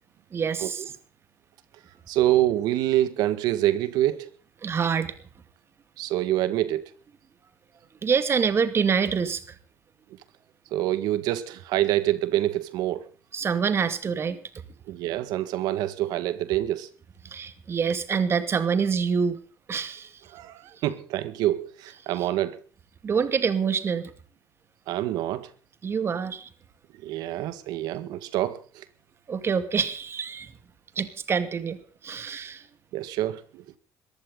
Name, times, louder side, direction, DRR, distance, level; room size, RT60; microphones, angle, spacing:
voice 1, 0.3-0.8 4.6-5.1 8.0-9.6 13.3-14.4 17.3-19.4 19.7-20.2 23.0-24.1 25.8-26.5 29.3-30.5 31.0-31.8 32.0-32.7, right 6 dB, 40° right, 2.3 m, -26 dB
voice 2, 2.1-4.3 6.0-6.9 10.7-13.0 14.9-16.9 20.3-22.6 24.9-25.5 27.0-28.8 32.9-33.6, right 14 dB, 80° right, 1.9 m, -26 dB
21.5 x 15.0 x 4.0 m
cardioid pair, 105°, 7 cm